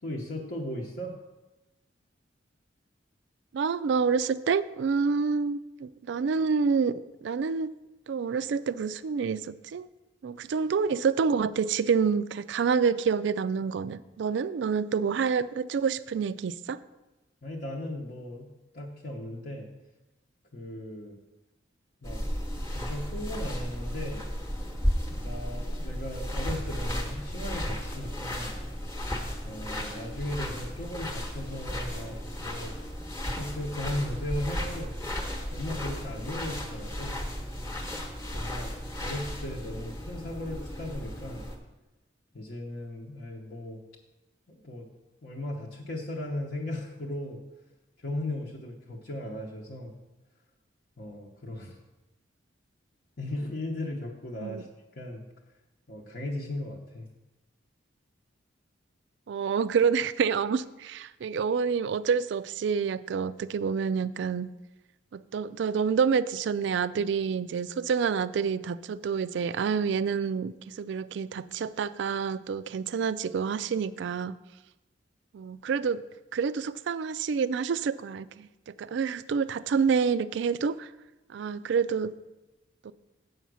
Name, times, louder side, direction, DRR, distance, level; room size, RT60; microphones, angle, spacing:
voice 1, 0.0-1.2 17.4-18.5 18.7-19.7 20.5-21.2 22.0-22.2 22.7-24.2 25.0-28.6 29.4-32.7 33.2-34.9 35.5-37.2 38.3-38.7 39.0-41.5 42.3-43.8 44.5-44.9 45.2-47.4 48.0-49.9 51.0-51.8 53.2-54.7 55.0-55.2 55.9-57.1, left 1 dB, 55° left, -3 dB, 0.9 m, -37 dB
voice 2, 3.5-7.7 8.1-9.9 10.2-16.8 54.4-54.6 59.3-64.5 65.1-74.4 75.3-76.0 76.3-80.9 81.3-82.1 82.8-82.9, right 6 dB, 65° right, 16 dB, 0.3 m, -28 dB
sound 1, 22.0-41.6, equal, 15° left, 1.0 m, -34 dB
7.9 x 5.6 x 6.1 m, 1.0 s
head